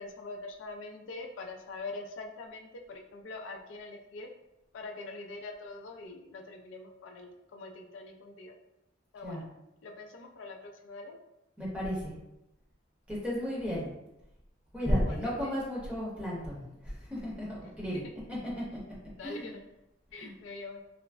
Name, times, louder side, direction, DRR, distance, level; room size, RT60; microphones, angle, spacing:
voice 1, 0.0-4.3 4.7-8.5 9.1-9.4 9.8-11.2 15.0-15.5 19.2-19.6 20.1-20.8, left 3 dB, 75° left, 2 dB, 0.3 m, -43 dB
voice 2, 11.6-12.1 13.1-13.9 14.7-18.0 18.3-18.8 19.2-19.5 20.1-20.3, equal, 5° right, -7 dB, 0.7 m, -33 dB
3.3 x 2.0 x 2.3 m, 0.91 s
head